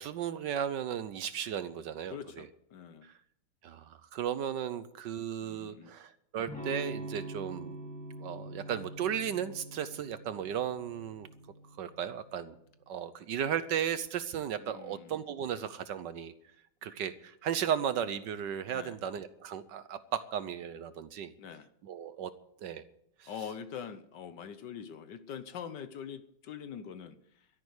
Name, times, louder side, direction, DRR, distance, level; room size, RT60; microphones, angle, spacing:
voice 1, 0.0-2.5 3.0-3.1 3.6-7.8 8.2-11.3 11.8-12.6 12.9-16.3 16.8-21.3 21.8-22.3 22.6-22.8 23.2-23.3, right 9 dB, 70° right, 13 dB, 1.2 m, -35 dB
voice 2, 2.1-3.1 5.4-5.9 14.6-15.1 18.7-19.0 21.4-21.7 23.3-27.5, left 7 dB, 65° left, 12 dB, 1.4 m, -44 dB
Electric guitar / Strum, 6.5-12.2, right 1 dB, 5° left, 2.6 m, -44 dB
13.0 x 10.5 x 8.1 m, 0.73 s
omnidirectional pair, 2.3 m